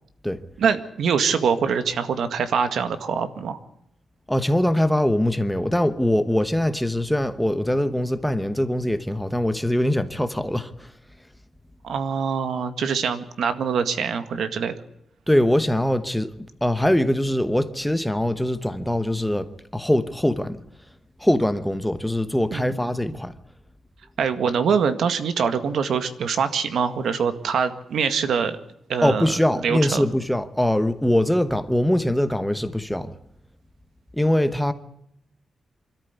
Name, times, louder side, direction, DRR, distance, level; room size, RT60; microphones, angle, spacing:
voice 1, 0.6-3.6 11.8-14.7 22.5-23.0 24.2-28.6 28.9-29.3 29.6-30.1, right 6 dB, 75° right, 1.9 m, -24 dB
voice 2, 4.3-10.9 15.3-16.3 16.6-20.6 21.2-23.3 29.0-33.1 34.1-34.7, left 1 dB, 5° left, 1.0 m, -22 dB
25.5 x 13.5 x 8.3 m
wide cardioid pair, 155°, 0 cm